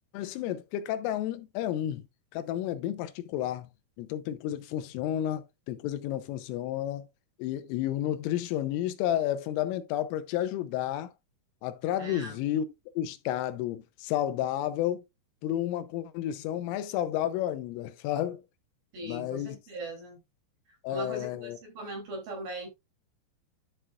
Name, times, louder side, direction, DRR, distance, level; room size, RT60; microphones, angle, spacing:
voice 1, 0.1-2.0 2.3-3.7 4.0-7.1 7.4-11.1 11.6-12.7 13.0-15.1 15.4-18.4 19.0-19.6 20.8-21.6, left 12 dB, 85° left, 3.3 m, -31 dB
voice 2, 12.0-12.3 18.9-20.2 20.9-22.7, right 1 dB, 50° right, 4.6 m, -39 dB
11.0 x 6.1 x 2.4 m
omnidirectional pair, 5.8 m